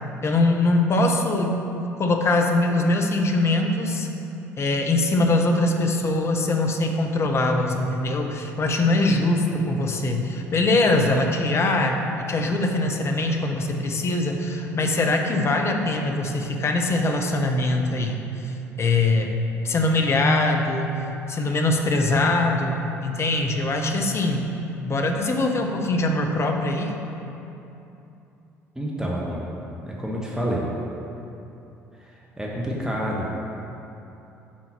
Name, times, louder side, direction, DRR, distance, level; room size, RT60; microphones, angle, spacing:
voice 1, 0.2-1.6 2.0-4.1 4.6-19.3 19.6-24.5 24.9-27.0, left 2 dB, 35° left, 3 dB, 0.9 m, -22 dB
voice 2, 28.7-29.6 29.8-30.7 32.0-33.4, equal, 5° right, -4 dB, 1.2 m, -28 dB
7.3 x 4.3 x 5.9 m, 2.9 s
figure-of-eight pair, 55°, 8 cm